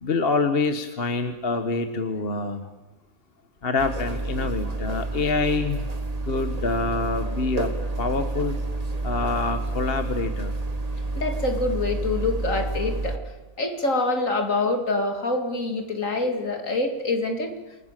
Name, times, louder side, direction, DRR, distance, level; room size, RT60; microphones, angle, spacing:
voice 1, 0.0-2.6 3.6-5.8 6.3-7.7 8.0-8.6 9.0-10.5, left 3 dB, 45° left, 8 dB, 1.5 m, -26 dB
sound 1, 3.8-13.2, right 2 dB, 25° right, 1.7 m, -29 dB
voice 2, 11.1-13.2 13.6-17.6, left 2 dB, 65° left, 4 dB, 3.1 m, -26 dB
28.5 x 19.5 x 7.6 m, 1.1 s
omnidirectional pair, 1.5 m